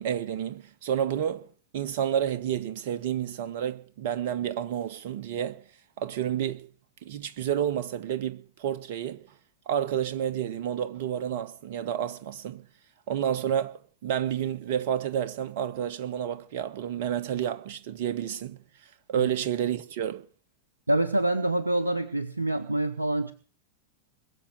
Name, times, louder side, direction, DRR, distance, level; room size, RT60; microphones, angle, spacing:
voice 1, 0.0-1.5 1.7-5.6 6.0-6.7 7.0-9.2 9.7-12.6 13.1-18.6 19.1-20.2, right 9 dB, 50° right, 1.2 m, -30 dB
voice 2, 20.9-23.3, right 1 dB, 85° right, 0.8 m, -26 dB
21.5 x 7.3 x 8.2 m
figure-of-eight pair, 90°, 0 cm